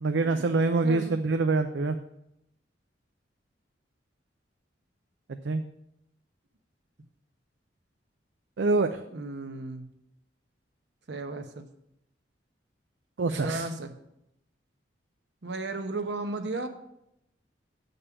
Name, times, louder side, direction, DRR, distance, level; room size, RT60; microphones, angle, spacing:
voice 1, 0.0-2.0 5.3-5.6 8.6-9.0 13.2-13.7, right 3 dB, 85° right, 8 dB, 0.5 m, -25 dB
voice 2, 0.8-1.2 9.1-9.9 11.1-11.7 13.4-13.9 15.4-16.7, right 2 dB, 70° right, 7 dB, 0.9 m, -34 dB
8.5 x 5.4 x 6.9 m, 0.82 s
head